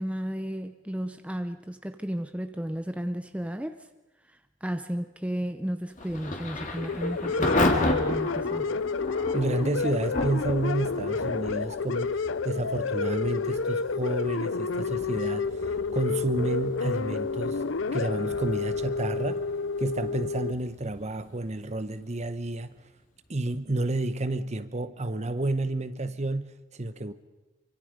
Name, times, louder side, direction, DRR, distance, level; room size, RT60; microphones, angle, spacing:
voice 1, 0.0-3.9 4.3-8.7, equal, 5° right, 0.7 m, -33 dB
Thunder / Rain, 5.9-22.7, left 1 dB, 40° left, 2.7 m, -34 dB
sound 1, 6.8-20.5, left 4 dB, 70° left, 0.6 m, -30 dB
voice 2, 9.3-15.7 15.9-17.6 17.9-19.5 19.8-22.7 23.3-27.1, right 2 dB, 35° right, 1.0 m, -30 dB
26.5 x 24.5 x 5.2 m
head